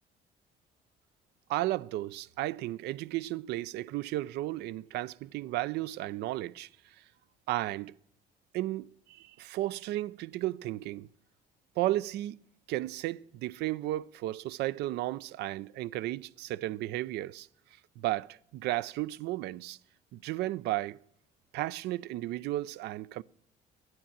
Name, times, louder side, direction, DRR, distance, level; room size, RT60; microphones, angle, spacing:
voice 1, 1.5-6.7 7.5-7.9 8.5-11.1 11.8-12.4 12.7-17.5 18.0-19.8 20.1-21.0 21.5-23.2, right 16 dB, 80° right, 0.4 m, -34 dB
11.5 x 9.3 x 8.6 m
cardioid pair, 110°, 17 cm